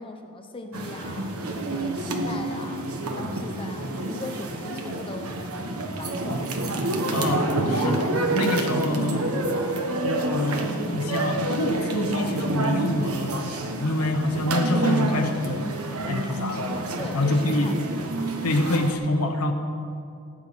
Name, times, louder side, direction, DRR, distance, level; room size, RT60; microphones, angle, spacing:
voice 1, 0.0-6.5 17.0-17.8, left 2 dB, 25° left, 5 dB, 0.9 m, -39 dB
sound 1, 0.7-18.9, right 2 dB, 75° right, 1.4 m, -28 dB
voice 2, 7.1-9.3 10.3-16.7 17.1-17.7 18.4-19.5, left 2 dB, 90° left, 3 dB, 1.3 m, -26 dB
17.5 x 6.4 x 8.7 m, 2.5 s
head